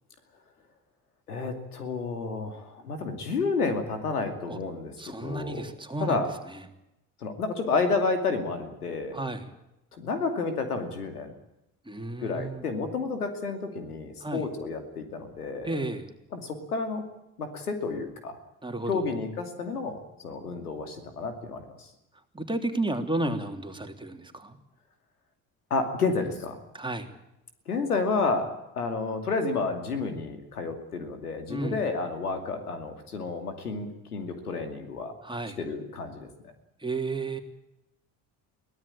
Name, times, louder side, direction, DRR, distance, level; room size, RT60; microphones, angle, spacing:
voice 1, 1.3-5.7 6.0-6.3 7.2-9.2 9.9-11.3 12.2-15.8 16.3-17.0 17.4-18.4 18.9-21.9 25.7-26.6 27.7-35.1 35.6-36.3, left 4 dB, 90° left, 7 dB, 2.6 m, -30 dB
voice 2, 5.0-6.2 6.5-6.6 9.1-9.5 11.8-12.6 14.2-14.4 15.6-16.1 18.6-19.0 22.3-24.6 26.7-27.1 31.5-31.8 35.2-35.6 36.8-37.4, right 2 dB, 10° right, 5 dB, 3.3 m, -32 dB
23.5 x 17.0 x 8.7 m, 0.88 s
hypercardioid pair, 55°, 44 cm